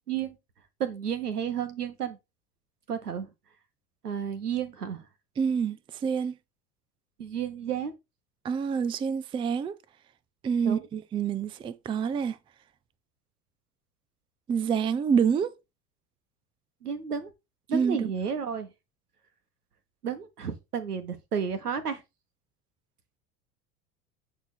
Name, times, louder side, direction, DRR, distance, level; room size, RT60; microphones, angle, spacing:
voice 1, 0.8-2.2 2.9-3.3 4.0-5.0 7.2-7.9 10.6-10.8 16.8-17.3 17.7-18.7 20.0-22.0, right 7 dB, 80° right, 1.3 m, -32 dB
voice 2, 5.4-6.4 8.4-9.8 10.4-12.4 14.5-15.5 17.7-18.1, right 6 dB, 10° right, 0.4 m, -27 dB
7.9 x 4.5 x 4.3 m
figure-of-eight pair, 75°, 45 cm